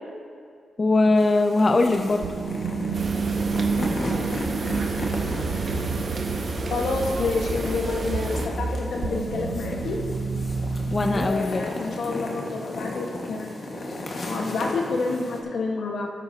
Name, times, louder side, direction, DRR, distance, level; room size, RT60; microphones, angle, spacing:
voice 1, 0.8-2.2 10.9-11.6, left 2 dB, 35° left, 6 dB, 0.4 m, -20 dB
sound 1, 1.2-15.4, left 2 dB, 55° left, 1.6 m, -35 dB
sound 2, 1.7-11.3, right 5 dB, 80° right, 0.7 m, -30 dB
sound 3, 2.9-8.5, right 3 dB, 55° right, 1.0 m, -31 dB
voice 2, 6.7-10.0 11.1-13.5 14.2-16.1, left 3 dB, 75° left, 0 dB, 1.3 m, -28 dB
13.0 x 9.9 x 2.8 m, 2.2 s
cardioid pair, 70°, 0 cm